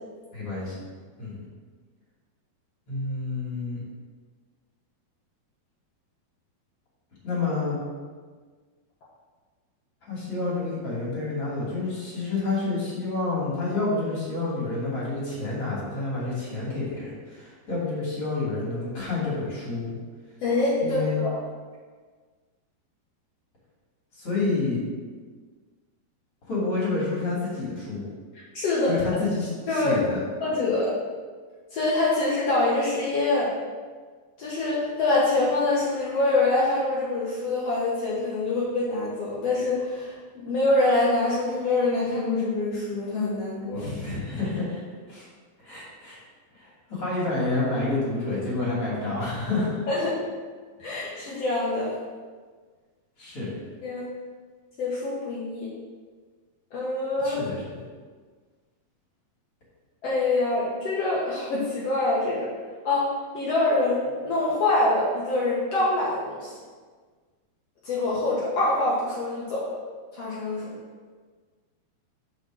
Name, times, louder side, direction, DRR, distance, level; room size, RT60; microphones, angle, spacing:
voice 1, 0.3-0.8 1.2-1.4 2.9-3.8 7.2-7.8 10.0-20.0 20.8-21.2 24.2-24.8 26.5-28.1 28.9-30.2 43.7-44.8 45.1-45.3 45.6-46.2 46.5-49.8 53.2-53.6 57.2-57.7, left 3 dB, 40° left, -7 dB, 3.3 m, -29 dB
voice 2, 20.4-21.4 28.5-29.0 29.7-30.0 30.4-31.0 31.7-33.5 34.4-43.9 49.9-50.2 50.8-51.9 53.8-54.1 54.8-55.7 56.7-57.4 60.0-62.5 62.8-63.1 63.3-66.5 67.8-69.7 70.1-70.8, left 2 dB, 75° left, -6 dB, 1.4 m, -25 dB
6.2 x 5.3 x 6.2 m, 1.5 s
omnidirectional pair, 4.7 m